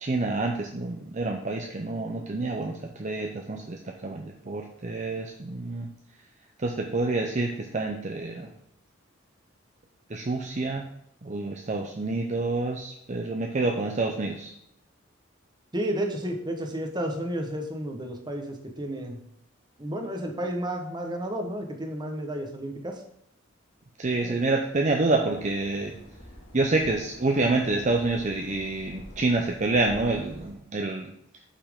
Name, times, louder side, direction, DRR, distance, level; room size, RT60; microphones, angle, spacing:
voice 1, 0.0-5.9 6.6-8.5 10.1-10.8 11.2-14.5 24.0-25.9 26.5-31.1, right 2 dB, 35° right, 2 dB, 0.6 m, -28 dB
voice 2, 15.7-19.2 19.8-23.0 24.2-24.4, right 1 dB, 20° right, 4 dB, 1.1 m, -32 dB
sound 1, 25.3-30.5, equal, 80° left, 2.3 m, -47 dB
8.3 x 5.7 x 3.7 m, 0.76 s
head